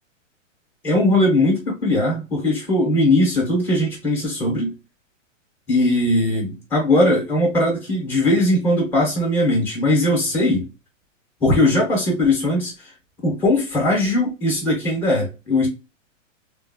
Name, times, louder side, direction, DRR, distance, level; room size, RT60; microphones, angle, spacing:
voice 1, 0.8-4.7 5.7-10.7 11.4-12.9 13.2-15.7, left 1 dB, 5° left, 0.4 m, -19 dB
3.2 x 2.0 x 2.4 m
hypercardioid pair, 145°, 39 cm